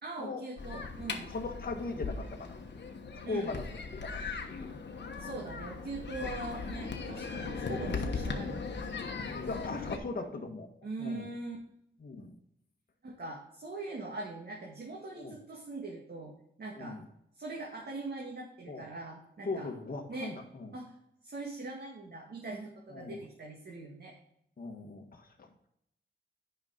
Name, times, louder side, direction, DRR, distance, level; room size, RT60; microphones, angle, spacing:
voice 1, 0.0-1.3 3.2-3.5 5.2-8.8 10.8-11.6 13.0-16.3 16.6-17.0 17.3-19.7 20.1-20.3 20.7-20.9 21.2-24.1, right 3 dB, 55° right, -2 dB, 1.7 m, -41 dB
sound 1, 0.6-10.0, left 4 dB, 65° left, 1.2 m, -38 dB
voice 2, 1.3-2.6 3.1-3.6 3.9-4.8 6.2-6.3 7.5-7.7 9.3-10.7 11.0-11.3 12.0-12.4 15.1-15.3 16.7-17.0 18.7-18.9 19.4-20.7 22.9-23.2 24.6-25.5, left 3 dB, 50° left, 2 dB, 1.5 m, -39 dB
9.4 x 5.6 x 3.8 m, 0.74 s
wide cardioid pair, 120°, 19 cm